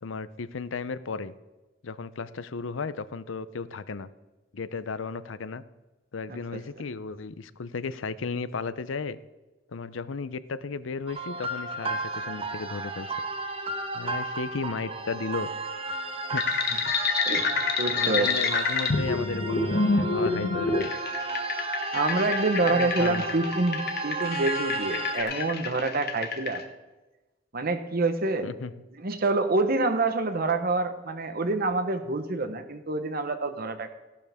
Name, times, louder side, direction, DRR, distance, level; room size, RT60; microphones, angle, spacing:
voice 1, 0.0-1.3 1.8-4.1 4.5-5.6 6.1-9.2 9.7-13.1 13.9-15.5 16.3-16.4 16.9-17.0 17.9-20.9 22.6-23.3 28.4-28.7, left 4 dB, 85° left, 15 dB, 0.6 m, -34 dB
voice 2, 6.3-6.6 16.7-16.8 17.2-18.3 21.9-26.6 27.5-28.5 29.0-33.9, right 3 dB, 50° right, 9 dB, 1.1 m, -27 dB
sound 1, 11.1-25.2, right 2 dB, 30° right, 0.9 m, -34 dB
sound 2, 16.4-26.6, left 4 dB, 55° left, 1.3 m, -28 dB
15.0 x 12.0 x 3.6 m, 1.1 s
head